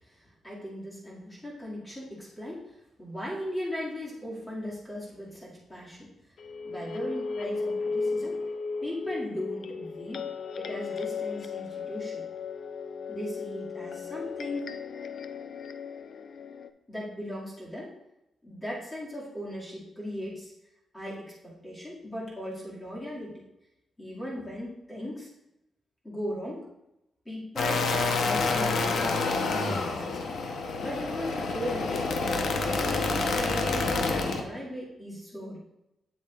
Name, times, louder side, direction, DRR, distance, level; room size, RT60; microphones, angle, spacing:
voice 1, 0.0-6.1 6.6-8.4 8.8-10.3 10.6-12.3 13.1-14.7 16.9-17.9 18.4-20.5 20.9-23.5 24.0-25.3 26.0-26.7 27.3-27.9 28.2-30.3 30.8-32.2 32.6-35.6, equal, 15° left, -6 dB, 2.1 m, -38 dB
sound 1, 6.4-16.7, left 4 dB, 55° left, 0.4 m, -35 dB
sound 2, 27.6-34.4, left 3 dB, 70° left, 0.8 m, -28 dB
8.1 x 7.2 x 2.4 m, 0.89 s
wide cardioid pair, 135°, 0 cm